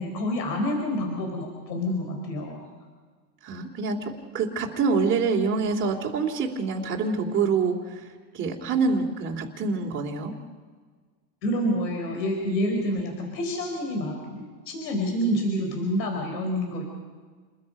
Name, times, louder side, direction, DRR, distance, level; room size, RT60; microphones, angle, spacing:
voice 1, 0.0-2.6 11.4-16.8, equal, 90° left, 2 dB, 4.6 m, -28 dB
voice 2, 3.4-10.3 12.9-13.0, right 4 dB, 25° right, -1 dB, 2.6 m, -26 dB
29.0 x 21.0 x 5.4 m, 1.5 s
supercardioid pair, 140°, 49 cm